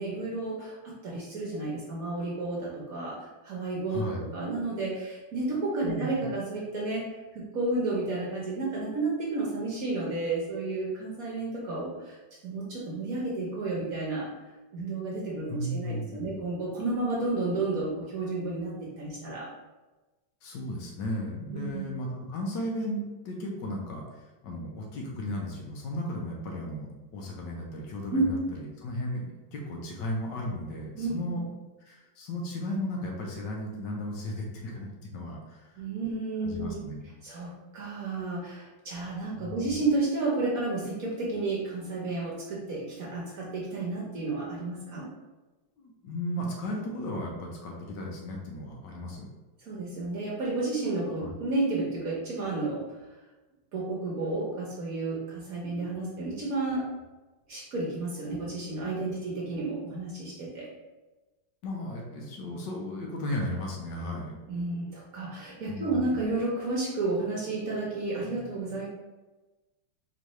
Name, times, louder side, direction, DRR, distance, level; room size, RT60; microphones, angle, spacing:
voice 1, 0.0-4.0 4.3-12.2 12.4-14.3 14.7-18.7 19.0-19.5 21.5-21.9 28.1-28.3 31.0-31.2 35.8-36.8 37.2-45.1 49.7-52.8 53.7-56.9 57.5-60.7 64.5-68.9, right 2 dB, 55° right, -5 dB, 1.1 m, -31 dB
voice 2, 3.9-4.2 5.8-6.3 15.5-16.4 20.4-26.9 27.1-31.5 31.8-35.8 36.4-37.0 39.4-39.8 45.8-49.3 51.2-51.3 61.6-64.4 65.7-66.2, left 1 dB, 70° left, -1 dB, 1.3 m, -35 dB
4.4 x 3.0 x 3.0 m, 1.1 s
omnidirectional pair, 2.2 m